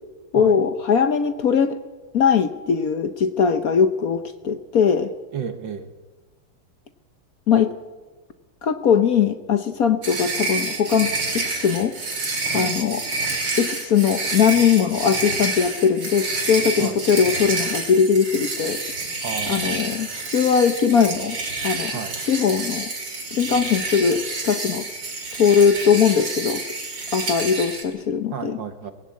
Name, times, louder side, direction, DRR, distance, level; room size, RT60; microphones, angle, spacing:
voice 1, 0.3-1.8 2.1-5.1 7.5-7.8 8.6-12.0 12.5-13.0 13.6-18.8 19.5-21.4 21.6-22.0 22.3-22.9 23.3-24.9 25.4-26.7 27.1-28.6, left 7 dB, 55° left, 10 dB, 1.0 m, -20 dB
voice 2, 5.3-5.9 12.5-12.8 16.8-17.0 19.2-19.7 21.9-22.2 28.3-28.9, right 7 dB, 60° right, 8 dB, 2.0 m, -32 dB
sound 1, 10.0-27.8, right 3 dB, 80° right, 4.9 m, -28 dB
20.5 x 17.0 x 8.5 m, 1.3 s
omnidirectional pair, 2.4 m